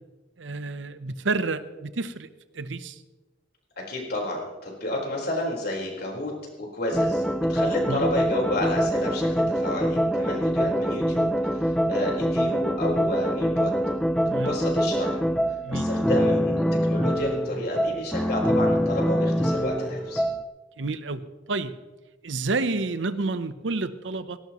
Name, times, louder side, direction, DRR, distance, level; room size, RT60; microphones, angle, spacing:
voice 1, 0.4-2.3 2.5-3.0 7.9-8.1 14.3-14.6 15.6-15.9 20.8-21.8 22.2-24.4, right 3 dB, 75° right, 13 dB, 0.8 m, -29 dB
voice 2, 3.9-6.3 6.6-7.2 7.5-13.7 14.4-15.2 15.7-20.2, left 1 dB, 55° left, -1 dB, 4.3 m, -31 dB
sound 1, 6.9-20.4, equal, 5° left, 0.5 m, -24 dB
18.0 x 17.5 x 3.1 m, 1.2 s
head